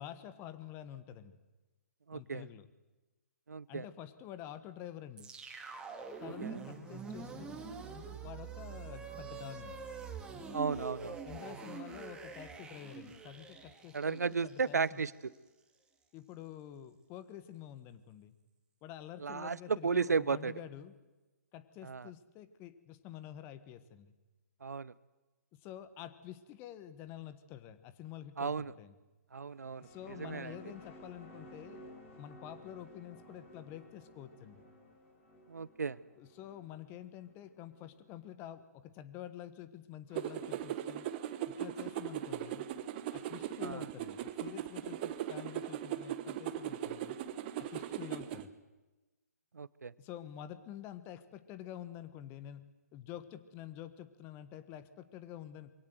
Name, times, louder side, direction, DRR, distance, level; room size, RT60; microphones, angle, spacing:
voice 1, 0.0-1.3 2.1-2.7 3.7-5.3 6.2-7.6 8.2-9.8 11.2-15.0 16.1-18.4 18.8-20.9 21.5-24.1 25.5-28.9 29.8-31.8 32.2-34.7 36.1-41.0 41.4-42.6 43.1-47.2 47.6-48.5 50.0-52.6 52.9-55.7, left 11 dB, 25° left, 13 dB, 1.3 m, -48 dB
voice 2, 2.1-2.4 3.5-3.8 6.4-6.6 10.5-11.2 13.9-15.1 19.2-20.5 21.9-22.0 24.6-24.9 28.4-28.7 29.3-29.8 30.2-30.5 35.5-36.0 43.6-43.7 49.6-49.9, right 5 dB, 75° right, 20 dB, 0.7 m, -34 dB
sound 1, 5.2-15.4, right 5 dB, 10° right, 2.3 m, -45 dB
sound 2, 29.5-38.1, equal, 50° left, 5.8 m, -55 dB
sound 3, 40.2-48.4, right 11 dB, 35° right, 1.2 m, -39 dB
23.0 x 17.0 x 7.8 m, 1.1 s
figure-of-eight pair, 130°, 9 cm